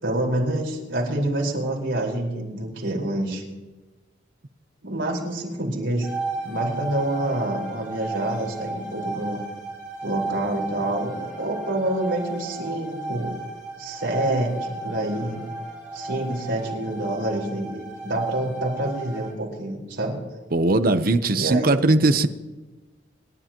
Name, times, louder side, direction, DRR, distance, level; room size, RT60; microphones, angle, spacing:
voice 1, 0.0-3.4 4.8-6.1 6.4-9.4 10.0-13.4 13.8-15.4 15.9-20.2 21.3-22.0, right 1 dB, 75° right, -2 dB, 4.7 m, -27 dB
sound 1, 6.0-19.3, right 3 dB, 5° right, 5.2 m, -34 dB
voice 2, 20.5-22.3, right 2 dB, 50° right, 10 dB, 0.8 m, -19 dB
28.5 x 11.5 x 3.0 m, 1.2 s
head